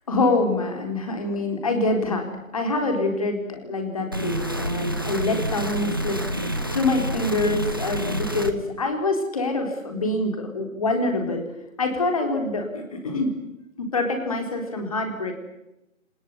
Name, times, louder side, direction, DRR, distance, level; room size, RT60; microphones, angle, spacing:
voice 1, 0.1-6.2 6.7-11.5 11.8-13.3 13.8-15.3, left 2 dB, 25° left, 4 dB, 4.2 m, -25 dB
sound 1, 4.1-8.5, right 1 dB, 15° right, 0.9 m, -28 dB
25.0 x 20.5 x 9.8 m, 0.90 s
figure-of-eight pair, 160°, 40 cm